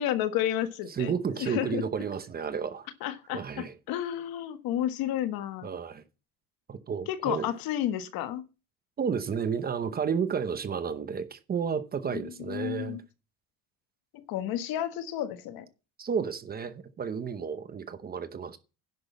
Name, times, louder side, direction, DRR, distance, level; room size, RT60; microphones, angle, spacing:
voice 1, 0.0-1.8 3.0-5.7 7.1-8.5 12.1-13.0 14.1-15.7, left 11 dB, 60° left, 1.4 m, -32 dB
voice 2, 0.9-2.9 3.3-3.7 5.6-6.0 6.7-7.5 9.0-13.0 16.0-18.6, right 6 dB, 25° right, 0.8 m, -32 dB
10.5 x 6.1 x 7.2 m
cardioid pair, 170°, 40 cm